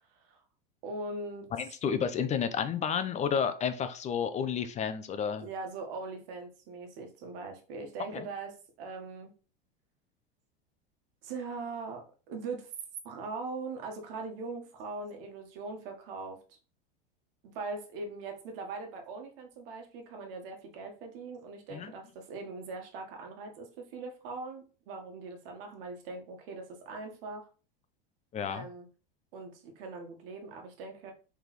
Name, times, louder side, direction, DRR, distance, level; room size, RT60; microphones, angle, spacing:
voice 1, 0.8-1.5 5.4-9.3 11.2-12.7 13.0-16.6 17.4-27.4 28.5-28.9 29.3-31.1, right 3 dB, 70° right, 3 dB, 1.4 m, -41 dB
voice 2, 1.5-5.5 8.1-8.3 21.7-21.9 28.3-28.7, left 7 dB, 25° left, 11 dB, 0.4 m, -31 dB
3.9 x 3.5 x 3.1 m, 0.36 s
hypercardioid pair, 110°, 30 cm